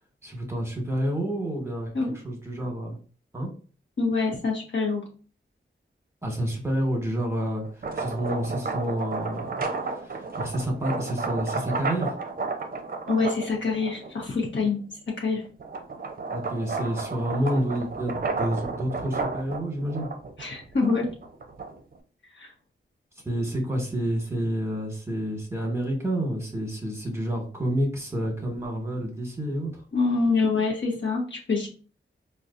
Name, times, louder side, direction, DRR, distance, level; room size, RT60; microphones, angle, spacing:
voice 1, 0.2-1.9 2.2-3.0 3.3-3.5 6.2-7.6 7.9-9.5 9.9-12.1 16.3-20.1 23.2-29.7, equal, 15° right, 1 dB, 1.2 m, -29 dB
voice 2, 4.0-5.0 13.1-14.8 15.2-15.4 20.4-21.1 22.4-22.5 29.9-31.7, left 4 dB, 65° left, -1 dB, 0.9 m, -25 dB
sound 1, 7.7-14.3 14.8-22.0, right 4 dB, 45° right, 0.5 m, -32 dB
4.0 x 2.3 x 2.5 m, 0.39 s
cardioid pair, 60°, 21 cm